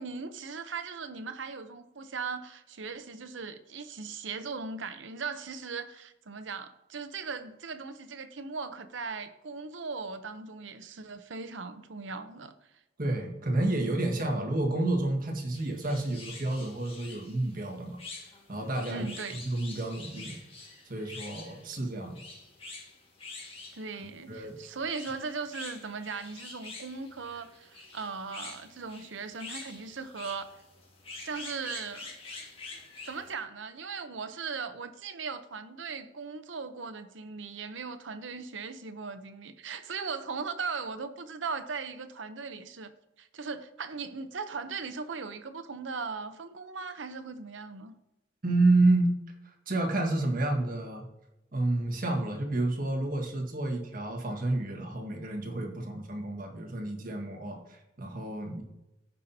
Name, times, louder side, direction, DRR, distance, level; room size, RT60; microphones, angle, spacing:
voice 1, 0.0-12.5 18.9-19.4 23.7-30.5 31.2-32.1 33.0-42.9 43.2-47.9, right 5 dB, 85° right, 0.8 m, -38 dB
voice 2, 13.0-18.0 18.5-19.0 19.4-20.4 20.8-22.2 24.0-24.6 48.4-49.2 49.4-51.0 51.5-58.6, right 2 dB, 50° right, 1.6 m, -29 dB
sound 1, 15.5-33.3, left 3 dB, 30° left, 1.8 m, -47 dB
15.5 x 5.6 x 2.8 m
head